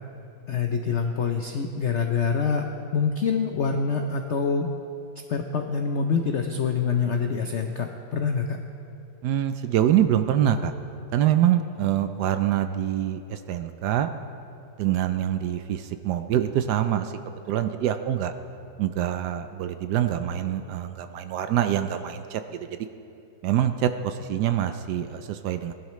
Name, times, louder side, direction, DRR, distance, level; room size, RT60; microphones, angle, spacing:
voice 1, 0.5-4.7 5.3-8.6, left 5 dB, 85° left, 4 dB, 0.6 m, -26 dB
voice 2, 9.2-10.7 11.1-14.1 14.8-17.1 17.5-18.3 18.8-22.4 23.4-25.7, right 11 dB, 75° right, 9 dB, 1.0 m, -25 dB
19.5 x 11.5 x 3.2 m, 2.7 s
omnidirectional pair, 2.1 m